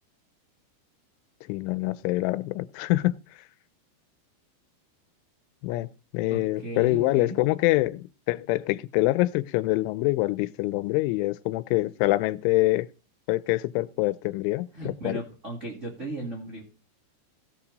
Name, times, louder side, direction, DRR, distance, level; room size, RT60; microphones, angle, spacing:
voice 1, 1.5-3.1 5.6-5.9 6.1-12.9 13.3-15.2, left 19 dB, 85° left, 3.1 m, -25 dB
voice 2, 6.3-7.4 14.7-16.6, right 1 dB, 40° right, 1.0 m, -36 dB
17.0 x 5.8 x 4.0 m
omnidirectional pair, 5.4 m